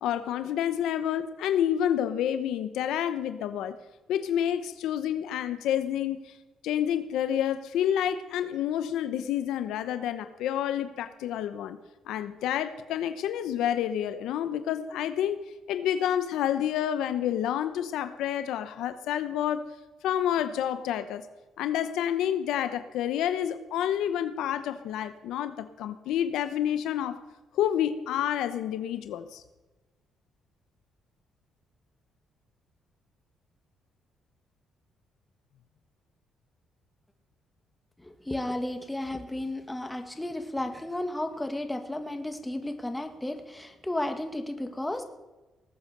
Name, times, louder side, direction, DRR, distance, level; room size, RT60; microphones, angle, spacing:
voice 1, 0.0-3.7 4.1-6.3 6.6-11.8 12.1-15.4 15.7-19.6 20.0-21.2 21.6-27.2 27.5-29.4, left 10 dB, 90° left, 12 dB, 0.8 m, -29 dB
voice 2, 38.0-45.0, left 1 dB, 10° left, 7 dB, 1.9 m, -33 dB
19.5 x 8.3 x 6.6 m, 1.1 s
cardioid pair, 90°, 0 cm